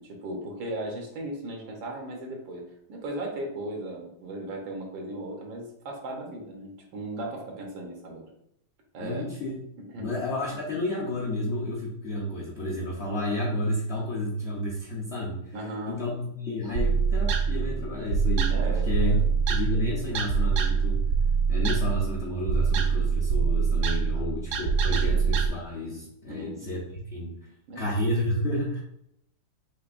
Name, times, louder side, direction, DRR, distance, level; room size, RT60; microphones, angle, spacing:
voice 1, 0.0-2.6 2.9-8.3 8.9-9.2 9.8-10.1 15.5-16.0 16.7-16.9 18.5-19.3 24.1-24.4 25.0-25.1 26.3-26.6 27.7-27.9, right 1 dB, 85° right, 0 dB, 1.8 m, -37 dB
voice 2, 9.0-9.5 9.9-15.5 15.8-19.2 19.5-21.0 21.5-26.8 27.1-27.3 27.7-28.8, left 1 dB, 50° left, -5 dB, 0.8 m, -30 dB
sound 1, 16.7-25.5, right 5 dB, 70° right, 1.0 m, -25 dB
6.6 x 2.8 x 2.5 m, 0.76 s
omnidirectional pair, 2.0 m